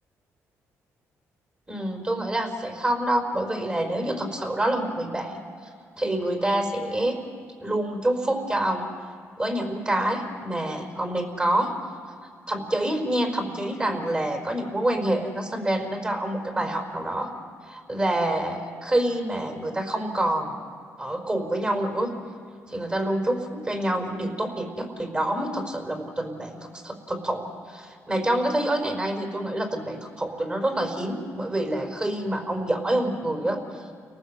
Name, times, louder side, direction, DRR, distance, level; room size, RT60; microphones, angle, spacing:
voice 1, 1.7-5.4 6.0-7.2 7.6-8.9 9.4-11.7 12.5-17.3 17.7-20.5 21.0-22.1 22.7-33.8, right 1 dB, 20° right, 3 dB, 4.8 m, -27 dB
29.5 x 19.0 x 8.1 m, 2.2 s
cardioid pair, 90°, 6 cm